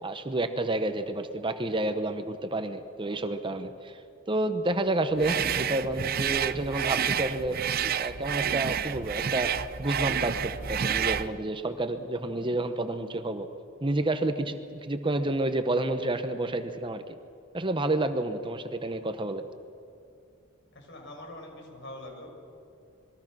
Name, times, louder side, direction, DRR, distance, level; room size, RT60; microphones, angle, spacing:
voice 1, 0.0-4.0 4.3-7.6 8.0-13.5 13.8-17.0 17.5-19.5, right 2 dB, 25° right, 9 dB, 0.9 m, -29 dB
sound 1, 5.2-11.3, right 8 dB, 45° right, 0.6 m, -29 dB
voice 2, 20.7-22.3, left 1 dB, 60° left, 2 dB, 5.5 m, -43 dB
26.5 x 22.0 x 6.2 m, 2.6 s
head